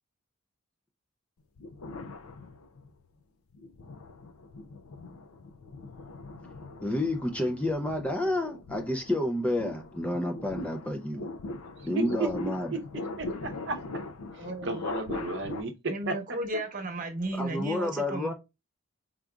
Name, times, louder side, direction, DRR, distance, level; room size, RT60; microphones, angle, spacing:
sound 1, 1.6-3.0 3.5-15.6, left 3 dB, 80° left, 0.5 m, -41 dB
voice 1, 6.8-11.3 11.8-12.7 17.4-18.3, left 1 dB, 5° left, 0.4 m, -30 dB
voice 2, 11.8-12.3 12.7-12.8 13.2-13.8 14.3-15.7 16.1-16.2, right 3 dB, 55° right, 0.7 m, -33 dB
voice 3, 14.4-14.8 15.9-18.3, right 1 dB, 40° right, 1.0 m, -34 dB
4.7 x 3.8 x 2.3 m
head